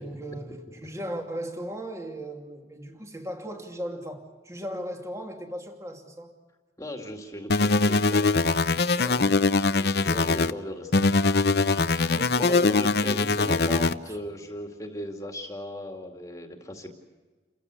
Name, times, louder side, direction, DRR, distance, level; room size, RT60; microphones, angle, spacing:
voice 1, 0.0-6.3 12.0-12.9 14.0-14.2, equal, 15° right, 2.6 m, -37 dB
voice 2, 6.8-8.7 8.9-11.3 11.8-17.0, left 1 dB, 20° left, 2.3 m, -37 dB
sound 1, 7.5-10.5 10.9-13.9, left 3 dB, 60° left, 0.7 m, -22 dB
29.0 x 15.5 x 8.3 m
head